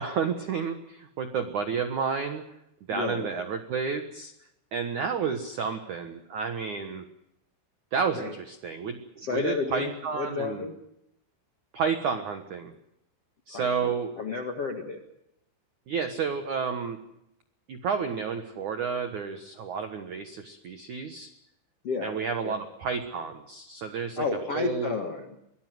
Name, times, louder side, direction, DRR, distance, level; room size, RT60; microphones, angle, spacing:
voice 1, 0.0-2.4 2.9-4.3 4.7-7.1 7.9-10.7 11.7-12.7 13.5-14.1 15.9-17.0 17.7-21.3 22.0-24.2 24.5-24.9, right 6 dB, 75° right, 7 dB, 1.8 m, -31 dB
voice 2, 2.9-3.4 8.1-8.3 9.2-10.7 13.5-15.0 21.8-22.1 22.4-22.6 24.2-25.4, left 4 dB, 60° left, 4 dB, 1.5 m, -32 dB
23.0 x 19.5 x 7.9 m, 0.83 s
omnidirectional pair, 5.7 m